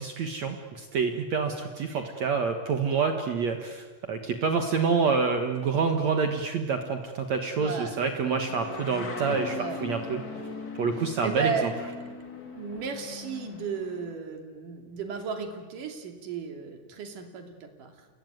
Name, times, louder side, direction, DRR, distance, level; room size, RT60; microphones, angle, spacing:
voice 1, 0.0-10.2 10.8-11.7, right 5 dB, 70° right, 5 dB, 1.7 m, -27 dB
voice 2, 7.6-8.0 9.6-9.9 11.0-11.7 12.5-18.1, right 5 dB, 50° right, 4 dB, 3.7 m, -35 dB
sound 1, 8.2-14.1, left 4 dB, 60° left, 0.9 m, -39 dB
28.5 x 20.5 x 9.4 m, 1.4 s
omnidirectional pair, 5.5 m